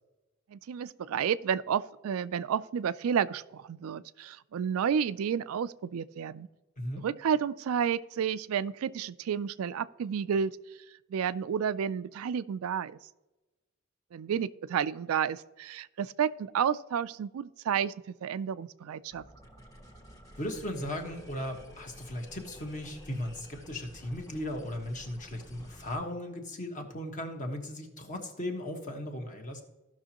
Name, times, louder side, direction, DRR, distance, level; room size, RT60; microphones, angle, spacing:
voice 1, 0.5-6.5 7.0-10.5 11.1-13.0 14.1-19.2, right 7 dB, 90° right, 15 dB, 0.4 m, -31 dB
sound 1, 19.1-25.9, equal, 15° left, 1.3 m, -51 dB
voice 2, 20.4-29.6, left 1 dB, 35° left, 3 dB, 1.3 m, -37 dB
15.5 x 6.1 x 2.9 m, 1.1 s
head